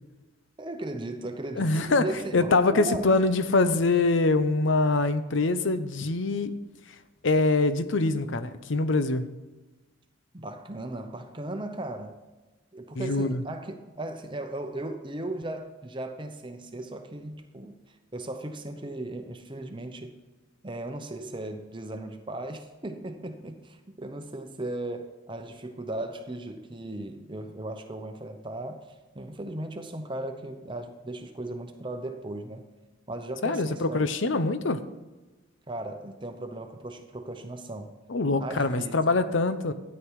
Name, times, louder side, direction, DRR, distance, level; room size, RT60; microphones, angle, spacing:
voice 1, 0.6-3.1 10.3-12.2 12.7-20.1 20.6-28.9 29.1-32.6 33.1-34.0 35.7-37.9 38.4-39.1, right 1 dB, 25° right, 6 dB, 0.8 m, -37 dB
voice 2, 1.6-2.1 2.3-6.5 7.2-9.3 13.0-13.4 33.4-34.8 38.1-39.7, left 3 dB, 65° left, 12 dB, 0.7 m, -24 dB
13.0 x 9.6 x 4.8 m, 1.2 s
head